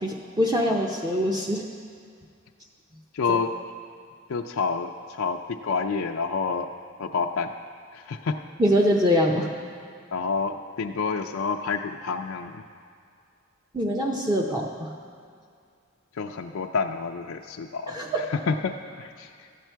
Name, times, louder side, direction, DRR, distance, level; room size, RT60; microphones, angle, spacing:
voice 1, 0.0-1.6 3.3-3.4 8.6-9.5 13.7-14.9 17.9-18.2, equal, 20° right, -1 dB, 0.6 m, -24 dB
voice 2, 3.1-3.5 4.3-6.7 7.0-7.5 7.9-8.4 10.1-12.6 16.2-19.3, left 5 dB, 85° left, 3 dB, 0.4 m, -28 dB
13.0 x 8.3 x 4.5 m, 2.2 s
head